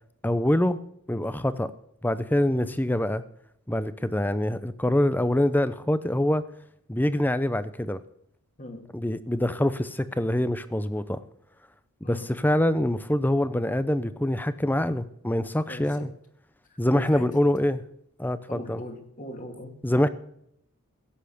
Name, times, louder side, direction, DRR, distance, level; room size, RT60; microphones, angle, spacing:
voice 1, 0.2-0.8 1.1-1.7 2.0-3.2 3.7-6.4 6.9-8.0 8.9-11.2 12.1-16.1 16.8-17.8 18.2-18.8 19.8-20.1, left 1 dB, 10° left, 13 dB, 0.7 m, -25 dB
voice 2, 2.5-2.8 8.6-8.9 12.0-12.3 15.7-16.1 16.9-17.3 18.5-19.8, left 1 dB, 35° left, 4 dB, 2.3 m, -40 dB
17.0 x 8.2 x 6.8 m, 0.74 s
head